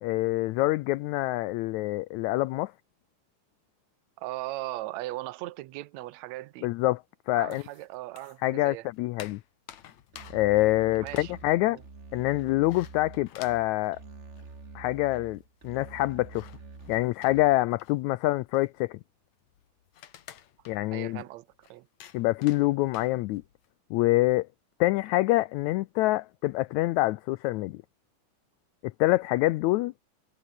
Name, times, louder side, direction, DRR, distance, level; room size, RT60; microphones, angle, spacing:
voice 1, 0.0-2.7 6.6-7.0 7.3-7.6 8.4-9.4 10.3-11.8 12.1-14.0 14.7-16.5 16.9-19.0 20.7-21.2 22.1-23.4 23.9-24.5 24.8-27.8 28.8-29.9, left 18 dB, 80° left, 1.7 m, -26 dB
voice 2, 4.2-6.7 7.3-8.9 11.0-11.3 11.6-11.8 20.9-21.9, right 17 dB, 70° right, 1.8 m, -38 dB
sound 1, 7.5-8.5 8.8-14.7 15.0-15.1 15.3-23.7, left 11 dB, 65° left, 2.6 m, -52 dB
Musical instrument, 10.1-17.7, right 4 dB, 25° right, 2.1 m, -47 dB
omnidirectional pair, 3.8 m